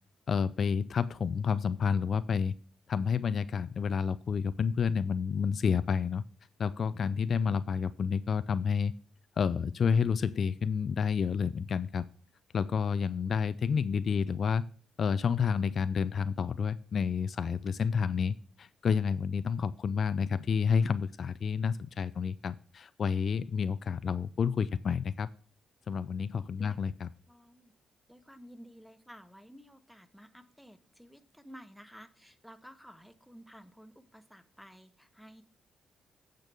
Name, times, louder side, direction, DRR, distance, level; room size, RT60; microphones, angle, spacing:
voice 1, 0.3-2.5 2.9-6.2 6.6-8.9 9.4-12.0 12.5-14.6 15.0-25.3 25.9-27.1, left 6 dB, 60° left, 14 dB, 0.4 m, -29 dB
voice 2, 27.3-27.7 28.1-35.4, equal, ahead, 11 dB, 1.1 m, -53 dB
9.1 x 5.3 x 6.1 m, 0.41 s
supercardioid pair, 60°, 0 cm